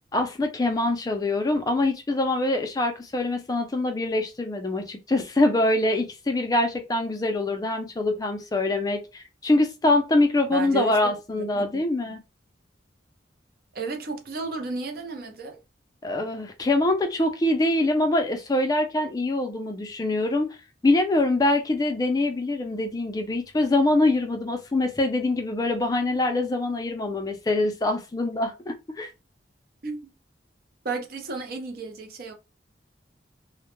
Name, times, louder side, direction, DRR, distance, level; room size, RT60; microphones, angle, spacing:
voice 1, 0.1-12.2 16.0-20.6 20.8-29.1, left 2 dB, 20° left, 0.3 m, -24 dB
voice 2, 10.5-11.1 11.4-11.8 13.7-15.6 29.8-30.1 30.8-32.3, right 4 dB, 55° right, 0.5 m, -33 dB
2.1 x 2.0 x 2.9 m
head